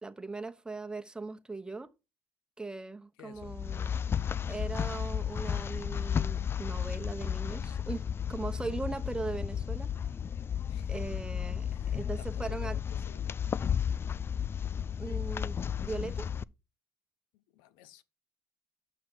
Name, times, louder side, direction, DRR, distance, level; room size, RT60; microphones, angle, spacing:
voice 1, 0.0-1.9 2.6-4.0 4.5-9.9 10.9-12.8 15.0-16.3, right 3 dB, 10° right, 1.1 m, -39 dB
voice 2, 3.2-3.6 10.7-11.1 11.7-13.5 17.3-18.0, left 12 dB, 75° left, 0.7 m, -54 dB
sound 1, 3.4-16.4, left 8 dB, 30° left, 0.3 m, -33 dB
8.0 x 5.8 x 4.4 m
hypercardioid pair, 65°, 8 cm